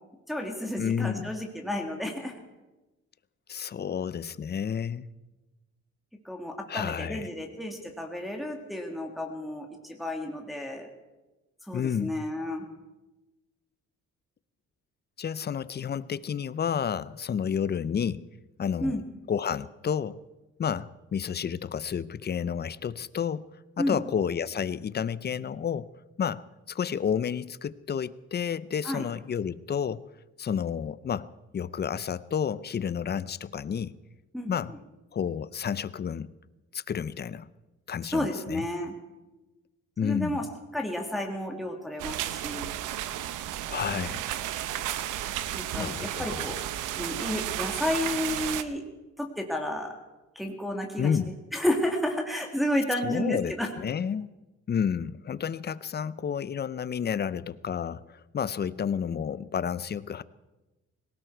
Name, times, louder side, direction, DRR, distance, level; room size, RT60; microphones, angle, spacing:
voice 1, 0.3-2.3 6.2-10.9 11.6-12.7 18.8-19.0 23.8-24.0 28.8-29.0 34.3-34.8 38.1-38.9 40.0-40.5 40.7-42.7 45.5-46.6 47.0-48.8 49.2-49.9 50.4-51.1 51.5-53.7, left 1 dB, ahead, 1 dB, 2.0 m, -31 dB
voice 2, 0.8-1.3 3.5-5.1 6.7-7.3 11.7-12.3 15.2-18.3 18.6-19.0 19.3-20.2 20.6-23.5 23.8-25.9 26.2-30.1 30.4-34.0 34.5-34.7 35.1-36.3 36.7-37.5 37.9-38.7 40.0-40.4 43.7-44.2 45.8-46.4 51.0-51.3 53.0-54.3 54.7-60.2, left 7 dB, 35° left, 18 dB, 0.6 m, -30 dB
sound 1, 42.0-48.6, right 12 dB, 90° right, 0.8 m, -33 dB
18.5 x 17.0 x 4.6 m, 1.1 s
cardioid pair, 90°, 30 cm